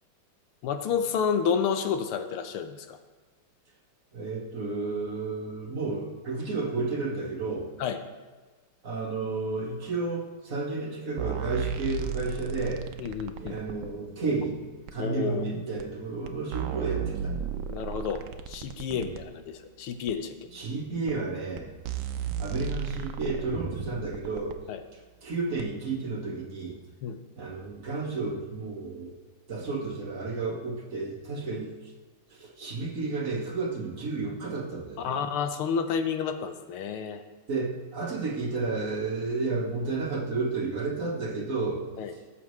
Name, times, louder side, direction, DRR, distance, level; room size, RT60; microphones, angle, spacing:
voice 1, 0.6-3.0 7.8-8.0 13.0-13.6 15.0-15.4 17.7-20.3 24.7-24.8 27.0-27.2 35.0-37.2 42.0-42.1, left 7 dB, 85° left, 8 dB, 1.7 m, -30 dB
voice 2, 4.1-7.7 8.8-12.9 13.4-14.6 14.9-17.4 18.9-19.2 20.5-22.1 22.4-24.6 24.9-26.8 27.4-29.2 29.5-31.9 32.3-35.2 37.5-41.8 42.1-42.2, right 3 dB, 45° right, -1 dB, 1.4 m, -32 dB
sound 1, 11.2-13.9 14.9-15.0 15.8-15.9 16.3-19.2 20.1-20.2 21.1-21.2 21.6-21.7 21.8-24.6 25.6-25.7, right 8 dB, 70° right, 1.1 m, -34 dB
17.0 x 7.1 x 3.1 m, 1.3 s
omnidirectional pair, 2.3 m